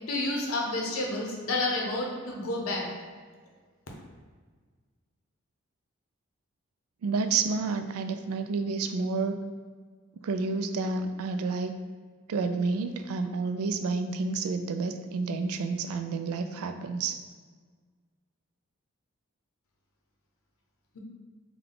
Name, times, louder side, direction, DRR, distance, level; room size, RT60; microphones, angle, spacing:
voice 1, 0.1-2.9, left 2 dB, 80° left, -1 dB, 0.7 m, -30 dB
voice 2, 7.0-9.4 10.2-11.7 12.3-17.2, right 4 dB, 85° right, 8 dB, 0.3 m, -30 dB
3.5 x 2.2 x 3.7 m, 1.5 s
head